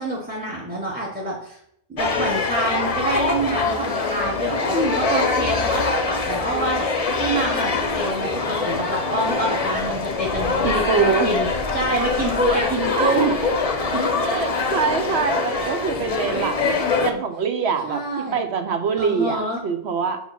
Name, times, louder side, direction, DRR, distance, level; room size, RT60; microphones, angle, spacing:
voice 1, 0.0-1.6 1.9-6.9 7.2-13.3 13.8-14.1 17.8-18.4 19.0-19.6, right 1 dB, 10° right, -3 dB, 1.1 m, -26 dB
sound 1, 2.0-17.1, left 4 dB, 35° left, 0.7 m, -24 dB
voice 2, 10.6-11.3 12.5-13.2 14.2-16.8 17.0-20.2, right 6 dB, 70° right, 7 dB, 1.1 m, -24 dB
5.7 x 4.8 x 5.8 m, 0.71 s
omnidirectional pair, 1.2 m